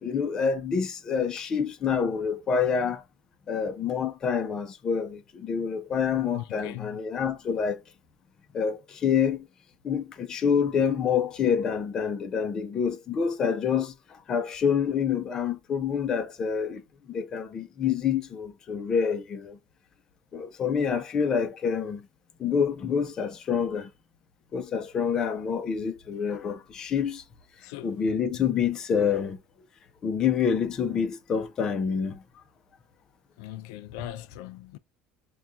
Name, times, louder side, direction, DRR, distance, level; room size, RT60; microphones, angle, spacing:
voice 1, 0.0-3.0 3.5-7.8 8.5-9.5 9.8-16.8 17.1-19.6 20.3-22.1 22.4-23.9 24.5-27.2 27.8-29.4 30.0-32.2, left 7 dB, 30° left, 0.5 m, -27 dB
voice 2, 6.3-7.0 27.6-27.9 33.4-34.8, left 15 dB, 90° left, 0.3 m, -40 dB
5.7 x 2.3 x 2.4 m
cardioid pair, 160°, 2 cm